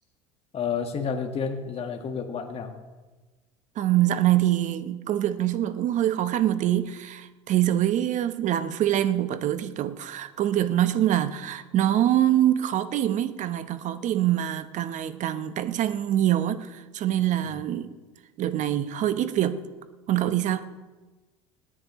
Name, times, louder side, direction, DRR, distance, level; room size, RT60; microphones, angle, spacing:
voice 1, 0.5-2.7 17.4-17.6, left 6 dB, 40° left, 3 dB, 1.7 m, -30 dB
voice 2, 3.8-17.9 18.4-19.6 20.1-20.7, right 12 dB, 50° right, 12 dB, 1.1 m, -24 dB
27.0 x 10.0 x 3.2 m, 1.2 s
hypercardioid pair, 75°, 16 cm